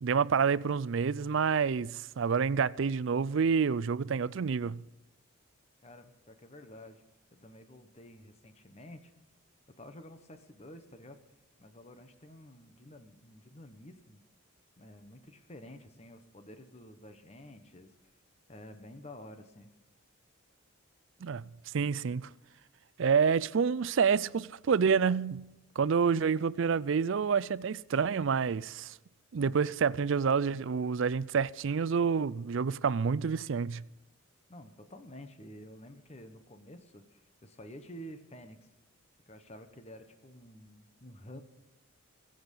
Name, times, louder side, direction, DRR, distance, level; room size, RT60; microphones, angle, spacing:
voice 1, 0.0-4.8 21.2-21.5 21.7-22.3 23.0-25.5 25.8-29.0 29.3-33.9, right 6 dB, 60° right, 0.4 m, -28 dB
voice 2, 5.8-7.0 7.3-9.1 9.8-11.2 11.6-14.2 14.8-17.9 18.5-19.7 34.5-38.7 39.3-41.4, equal, 30° left, 1.1 m, -50 dB
22.5 x 7.9 x 5.4 m
head